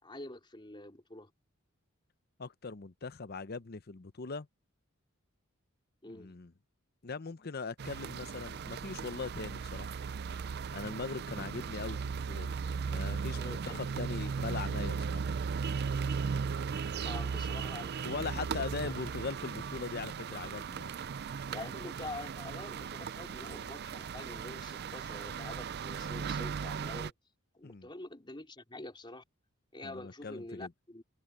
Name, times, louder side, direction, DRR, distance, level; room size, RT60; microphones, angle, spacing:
voice 1, 0.0-1.3 6.0-6.3 13.3-13.8 16.9-18.9 21.5-27.1 27.5-29.2 29.7-31.0, left 2 dB, 25° left, 3.5 m, -46 dB
voice 2, 2.4-4.5 6.1-6.5 7.0-9.9 10.7-12.5 12.9-15.3 18.0-20.9 27.6-27.9 29.8-30.7, left 4 dB, 50° left, 0.8 m, -40 dB
sound 1, 7.8-27.1, right 6 dB, 50° right, 0.4 m, -37 dB
head